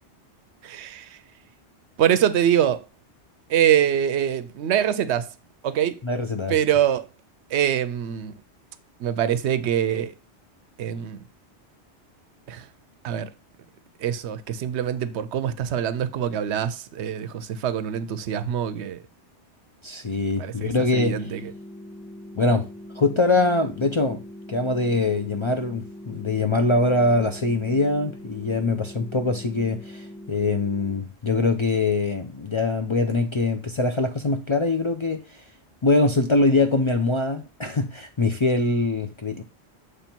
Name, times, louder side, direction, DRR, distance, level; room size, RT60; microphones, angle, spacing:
voice 1, 0.6-1.2 2.0-2.8 3.5-5.3 5.6-6.0 6.5-7.1 7.5-8.3 9.0-10.1 10.8-11.2 12.5-12.7 13.0-13.3 14.0-19.0 20.4-21.5, right 10 dB, 75° right, 0.9 m, -24 dB
voice 2, 6.0-6.6 19.8-21.3 22.4-22.7 22.9-24.2 24.5-35.2 35.8-39.4, left 2 dB, 35° left, 0.5 m, -23 dB
sound 1, 21.0-31.0, left 1 dB, 15° left, 2.1 m, -42 dB
7.1 x 3.3 x 4.4 m
omnidirectional pair, 1.2 m